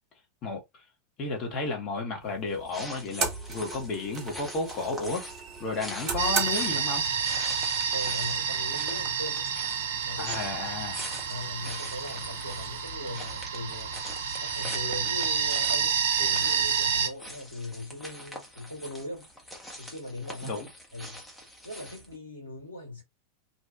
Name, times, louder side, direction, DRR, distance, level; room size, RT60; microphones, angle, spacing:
voice 1, 0.4-0.8 1.2-5.3 5.6-7.1 10.2-11.0 20.4-20.7, left 3 dB, 35° left, 1.1 m, -32 dB
sound 1, 2.2-12.8, right 5 dB, 35° right, 1.1 m, -39 dB
sound 2, 2.5-22.2, equal, 5° left, 0.8 m, -44 dB
sound 3, 6.2-17.1, right 6 dB, 60° right, 0.4 m, -29 dB
voice 2, 7.9-9.5 10.0-10.4 11.3-14.0 14.4-19.3 19.8-20.6 20.9-21.2 21.6-23.0, left 2 dB, 80° left, 1.4 m, -39 dB
2.7 x 2.3 x 2.3 m
figure-of-eight pair, 90°, 0 cm